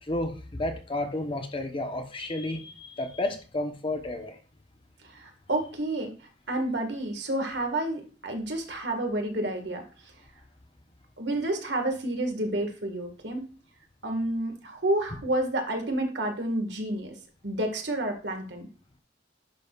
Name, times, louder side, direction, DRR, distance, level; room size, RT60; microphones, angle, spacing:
voice 1, 0.0-4.4, left 1 dB, 30° left, 5 dB, 1.0 m, -32 dB
voice 2, 5.0-6.1 6.5-9.8 11.2-13.5 14.0-17.2 17.4-18.7, right 1 dB, 65° right, 4 dB, 1.8 m, -30 dB
10.5 x 6.3 x 2.4 m, 0.37 s
head